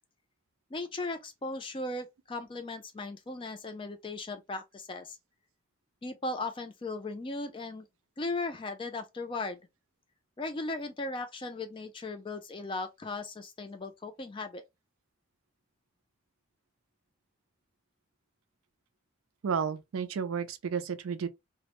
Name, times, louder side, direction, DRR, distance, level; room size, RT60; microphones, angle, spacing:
voice 1, 0.7-5.2 6.0-7.8 8.2-9.6 10.4-14.6, left 2 dB, 25° left, 0.3 m, -37 dB
voice 2, 19.4-21.3, right 6 dB, 80° right, 0.4 m, -32 dB
2.1 x 2.0 x 2.9 m
head